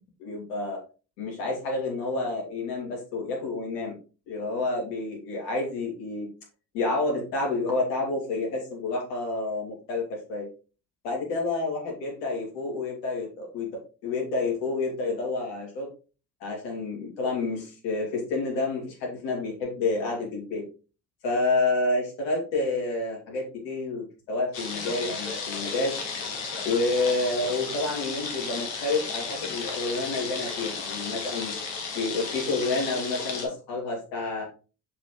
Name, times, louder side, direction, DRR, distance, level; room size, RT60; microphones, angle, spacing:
voice 1, 0.2-0.8 1.2-3.9 4.3-6.3 6.7-10.5 11.0-13.7 14.0-15.9 16.4-20.6 21.2-25.9 26.6-31.5 31.9-34.4, left 3 dB, 75° left, 0 dB, 2.7 m, -29 dB
sound 1, 24.5-33.4, left 5 dB, 60° left, 2.1 m, -34 dB
7.2 x 5.0 x 3.1 m, 0.34 s
hypercardioid pair, 55°, 49 cm